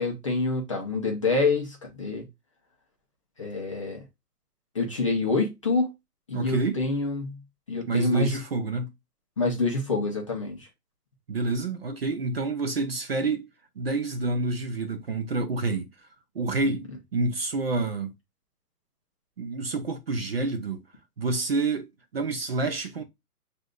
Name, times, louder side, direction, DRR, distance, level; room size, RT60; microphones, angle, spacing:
voice 1, 0.0-2.2 3.4-4.0 4.7-5.9 6.3-7.4 7.7-8.4 9.4-10.7, left 3 dB, 20° left, 0.5 m, -27 dB
voice 2, 6.3-6.8 7.9-8.9 11.3-13.5 13.8-15.9 16.4-16.9 17.1-18.1 19.4-20.8 21.2-23.0, right 3 dB, 40° right, 0.5 m, -28 dB
6.0 x 2.5 x 2.2 m
hypercardioid pair, 145°, 47 cm